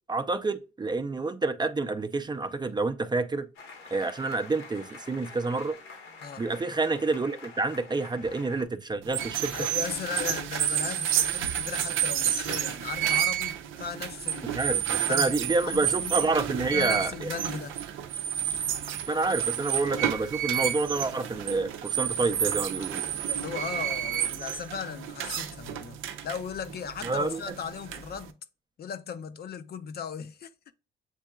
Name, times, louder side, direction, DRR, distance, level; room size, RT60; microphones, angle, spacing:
voice 1, 0.1-3.5 3.9-5.8 6.4-9.7 14.5-17.3 19.1-23.0 27.0-27.4, right 3 dB, 20° right, 0.5 m, -28 dB
sound 1, 3.5-8.6, left 4 dB, 85° left, 1.3 m, -47 dB
sound 2, 9.0-28.3, right 10 dB, 85° right, 0.6 m, -30 dB
voice 2, 9.5-14.6 15.1-15.4 15.6-16.3 16.7-17.8 23.3-28.3 28.8-30.5, left 7 dB, 50° left, 0.5 m, -37 dB
7.4 x 2.8 x 2.3 m
cardioid pair, 90°, 20 cm